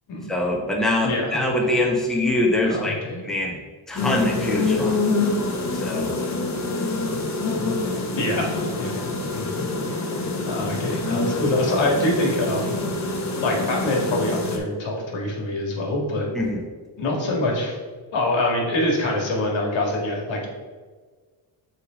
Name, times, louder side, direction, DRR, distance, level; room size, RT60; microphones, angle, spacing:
voice 1, 0.3-3.0 3.2-3.6 3.9-5.0 5.7-6.1 16.3-16.6, left 1 dB, ahead, -2 dB, 1.1 m, -23 dB
voice 2, 1.0-1.7 2.6-3.2 8.1-9.7 10.4-12.7 13.4-16.3 17.0-17.8 18.1-20.5, left 1 dB, 65° left, -1 dB, 2.0 m, -25 dB
sound 1, 4.0-14.6, left 3 dB, 35° left, 1.2 m, -26 dB
6.6 x 3.4 x 5.1 m, 1.4 s
cardioid pair, 85°, 49 cm